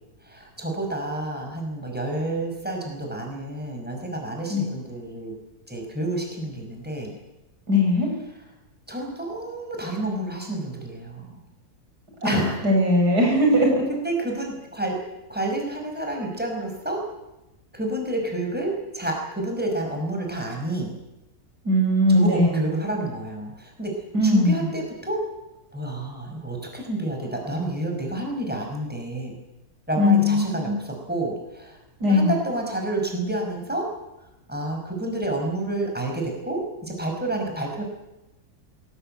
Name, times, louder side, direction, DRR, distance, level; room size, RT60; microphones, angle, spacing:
voice 1, 0.2-5.4 5.7-7.1 8.9-11.4 12.2-12.6 13.9-15.0 15.3-17.0 17.7-20.9 22.1-25.2 25.7-29.3 29.9-33.9 34.5-37.8, right 1 dB, 5° right, 1 dB, 5.7 m, -29 dB
voice 2, 7.7-8.1 12.2-13.8 21.6-22.6 24.1-24.7 29.9-30.8 32.0-32.4, left 1 dB, 80° right, 1 dB, 6.6 m, -20 dB
21.5 x 17.5 x 9.1 m, 0.96 s
omnidirectional pair, 1.7 m